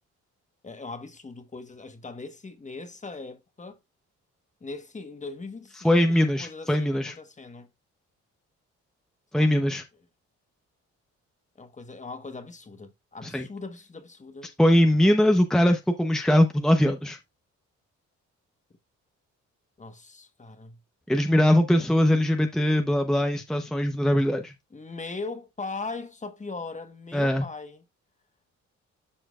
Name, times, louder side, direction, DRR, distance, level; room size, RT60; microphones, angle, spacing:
voice 1, 0.6-3.8 4.6-7.7 9.4-9.6 11.5-14.5 19.8-20.8 24.7-27.8, left 3 dB, 25° left, 1.3 m, -39 dB
voice 2, 5.8-7.1 9.3-9.8 13.2-13.4 14.6-17.2 21.1-24.5 27.1-27.4, left 1 dB, ahead, 0.8 m, -21 dB
12.5 x 4.4 x 2.4 m
cardioid pair, 90°, 30 cm